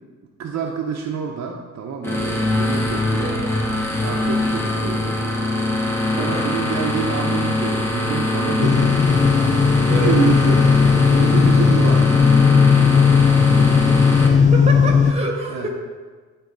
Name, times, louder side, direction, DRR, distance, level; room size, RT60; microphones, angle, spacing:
voice 1, 0.4-3.3 4.0-5.2 6.1-9.0 9.9-10.6 11.1-12.1 15.5-15.7, right 6 dB, 65° right, 1 dB, 0.8 m, -27 dB
sound 1, 2.0-14.3, left 1 dB, 10° left, 1.5 m, -23 dB
voice 2, 3.2-3.5 6.2-6.5 9.9-10.2 13.7-15.7, right 2 dB, 20° right, 1 dB, 1.7 m, -29 dB
sound 2, 8.6-15.1, left 5 dB, 25° left, 0.6 m, -15 dB
11.5 x 4.0 x 3.9 m, 1.4 s
cardioid pair, 90°, 30 cm